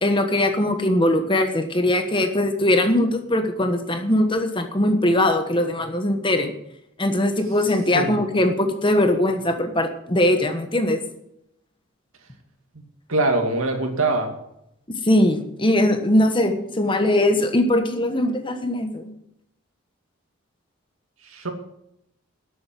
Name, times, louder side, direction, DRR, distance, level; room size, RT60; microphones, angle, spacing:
voice 1, 0.0-6.5 7.0-11.0 14.9-19.1, left 1 dB, 25° left, 7 dB, 1.3 m, -21 dB
voice 2, 13.1-14.3 21.2-21.5, right 2 dB, 85° right, 4 dB, 2.3 m, -23 dB
12.5 x 8.0 x 7.6 m, 0.80 s
head